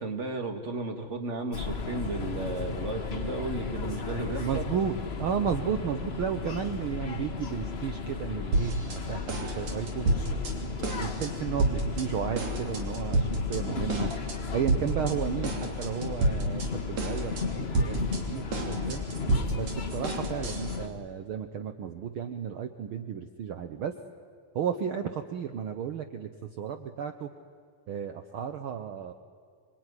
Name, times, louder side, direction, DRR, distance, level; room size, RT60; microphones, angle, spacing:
voice 1, 0.0-4.7, right 2 dB, 30° right, 6 dB, 1.7 m, -34 dB
sound 1, 1.5-20.9, left 5 dB, 65° left, 0.6 m, -34 dB
voice 2, 4.4-10.1 10.6-14.1 14.5-19.0 19.5-23.9 24.5-27.3 27.9-29.1, right 8 dB, 80° right, 8 dB, 1.1 m, -33 dB
sound 2, 8.5-9.0 9.3-10.5 10.8-11.3 11.6-12.1 12.4-13.6 13.9-14.4 14.7-15.1 15.4-16.7 17.0-17.4 17.7-20.8, right 2 dB, 55° right, 4.1 m, -29 dB
26.5 x 22.5 x 9.8 m, 2.1 s
omnidirectional pair, 3.7 m